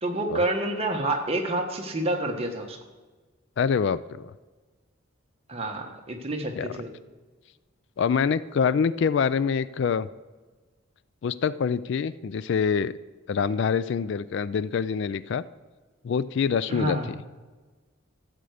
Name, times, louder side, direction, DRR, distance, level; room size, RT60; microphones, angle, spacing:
voice 1, 0.0-2.8 5.5-6.9 16.7-17.1, right 1 dB, 30° right, 2 dB, 1.4 m, -28 dB
voice 2, 3.6-4.3 6.6-6.7 8.0-10.1 11.2-13.0 13.3-15.4 16.0-17.2, left 6 dB, 60° left, 17 dB, 0.3 m, -25 dB
14.0 x 8.1 x 5.0 m, 1.3 s
head